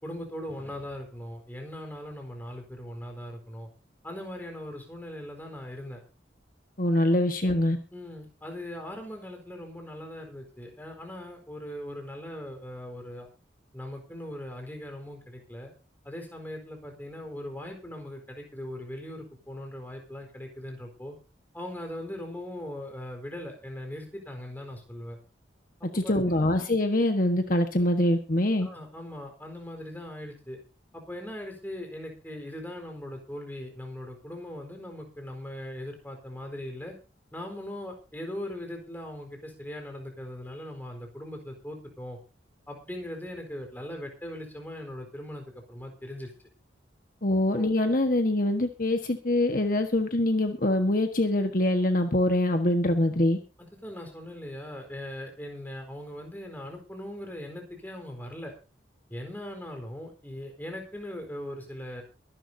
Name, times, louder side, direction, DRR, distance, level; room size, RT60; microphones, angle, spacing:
voice 1, 0.0-3.7 4.0-6.0 7.9-13.3 13.7-15.7 16.0-21.1 21.5-25.2 26.0-26.4 28.6-30.6 30.9-37.0 37.3-42.2 42.7-46.3 47.5-47.7 53.8-58.5 59.1-62.0, left 1 dB, 10° left, 3 dB, 4.3 m, -40 dB
voice 2, 6.8-7.8 25.9-28.7 47.2-53.4, left 1 dB, 45° left, 5 dB, 1.4 m, -24 dB
23.5 x 11.0 x 2.8 m, 0.32 s
head